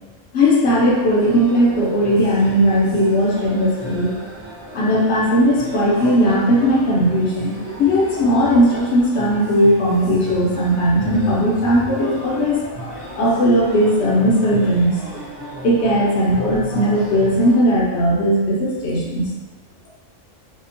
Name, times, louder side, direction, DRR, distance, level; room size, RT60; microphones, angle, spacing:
voice 1, 0.3-4.1 4.7-12.6 13.2-15.0 15.6-19.3, equal, 65° left, -4 dB, 0.7 m, -17 dB
sound 1, 0.7-17.6, equal, 50° right, 0.8 m, -34 dB
2.8 x 2.0 x 2.5 m, 1.2 s
omnidirectional pair, 1.4 m